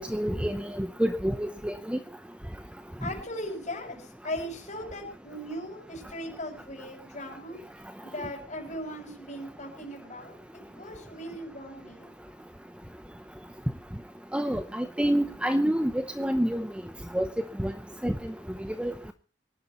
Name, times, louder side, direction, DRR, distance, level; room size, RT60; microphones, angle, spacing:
voice 1, 0.0-2.0 14.3-16.7 17.1-17.7 18.0-18.3 18.8-19.1, equal, 5° right, 9 dB, 0.7 m, -28 dB
voice 2, 3.0-7.6 8.0-12.1, left 1 dB, 40° left, 2 dB, 6.2 m, -38 dB
25.0 x 11.5 x 3.1 m, 0.33 s
head